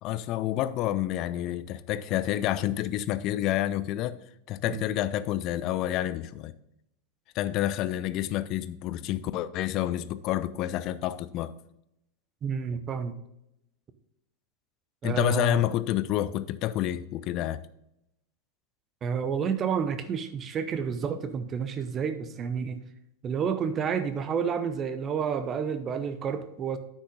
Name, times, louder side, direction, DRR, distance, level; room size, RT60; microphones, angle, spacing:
voice 1, 0.0-4.2 4.5-6.5 7.3-11.5 15.0-17.7, left 13 dB, 40° left, 0.4 m, -29 dB
voice 2, 12.4-13.1 15.0-15.6 19.0-22.8 23.2-26.8, right 7 dB, 25° right, 0.8 m, -30 dB
9.6 x 6.1 x 3.8 m
figure-of-eight pair, 90°, 0 cm